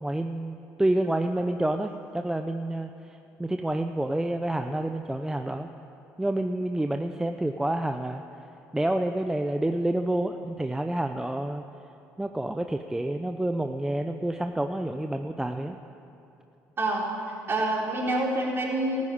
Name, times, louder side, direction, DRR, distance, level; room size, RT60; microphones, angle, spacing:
voice 1, 0.0-5.7 6.2-8.2 8.7-11.6 12.2-15.8, right 1 dB, 10° right, 6 dB, 0.6 m, -28 dB
voice 2, 16.8-19.0, right 1 dB, 40° right, -2 dB, 3.9 m, -27 dB
14.0 x 9.5 x 8.8 m, 2.8 s
supercardioid pair, 70°, 6 cm